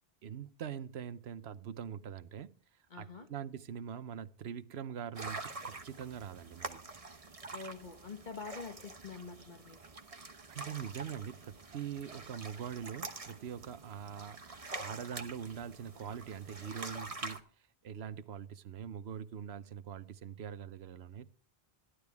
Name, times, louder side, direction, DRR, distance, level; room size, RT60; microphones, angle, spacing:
voice 1, 0.2-2.6 2.9-6.8 10.5-17.5 17.8-21.3, right 8 dB, 90° right, 1.0 m, -43 dB
voice 2, 2.9-3.3 7.5-9.8, left 5 dB, 50° left, 1.7 m, -46 dB
sound 1, 5.1-17.4, right 3 dB, 35° right, 1.2 m, -46 dB
14.0 x 11.5 x 3.5 m
omnidirectional pair, 1.0 m